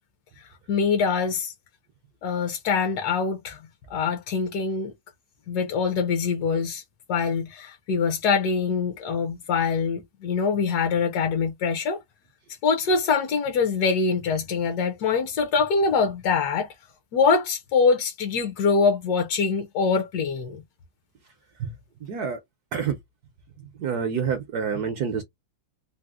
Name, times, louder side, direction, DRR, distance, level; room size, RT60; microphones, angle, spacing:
voice 1, 0.7-1.5 2.2-3.6 3.9-4.9 5.5-6.8 7.1-12.0 12.6-16.7 17.1-20.6, left 5 dB, 65° left, 1.1 m, -24 dB
voice 2, 22.1-22.4 22.7-22.9 23.8-25.2, right 6 dB, 70° right, 0.9 m, -27 dB
4.1 x 2.0 x 2.3 m
omnidirectional pair, 2.3 m